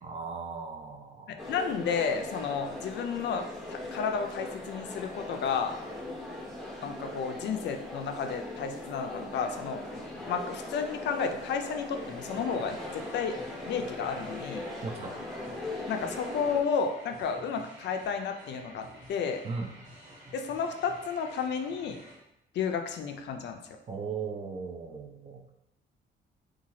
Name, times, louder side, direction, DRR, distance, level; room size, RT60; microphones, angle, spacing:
voice 1, 0.0-1.5 14.8-15.1 19.4-19.7 23.9-25.4, right 5 dB, 30° right, 3 dB, 0.4 m, -37 dB
voice 2, 1.3-5.8 6.8-9.8 10.3-13.4 13.7-14.6 15.9-19.4 20.3-22.0 22.5-23.6, left 6 dB, 60° left, 6 dB, 0.4 m, -32 dB
sound 1, 1.4-16.6, left 1 dB, 5° left, 0.8 m, -40 dB
sound 2, 11.9-22.2, equal, 60° right, 1.3 m, -51 dB
2.7 x 2.3 x 3.0 m, 0.83 s
cardioid pair, 90°, 20 cm